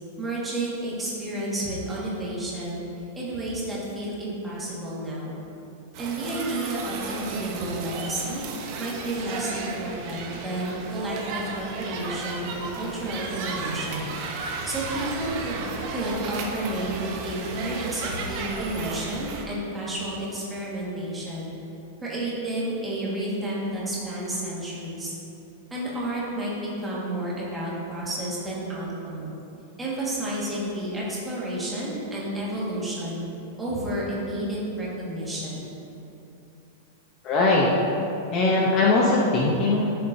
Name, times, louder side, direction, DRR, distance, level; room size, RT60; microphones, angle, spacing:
voice 1, 0.2-2.8 3.1-5.4 6.0-8.4 8.8-14.1 14.6-21.5 22.0-25.1 25.7-29.3 29.8-33.2 33.6-35.6, right 1 dB, 10° right, -7 dB, 1.6 m, -31 dB
sound 1, 5.9-19.4, right 4 dB, 35° right, 0.8 m, -34 dB
voice 2, 37.2-37.7 38.3-40.0, left 3 dB, 25° left, -3 dB, 0.7 m, -20 dB
13.5 x 6.8 x 2.7 m, 2.8 s
supercardioid pair, 180°, 0 cm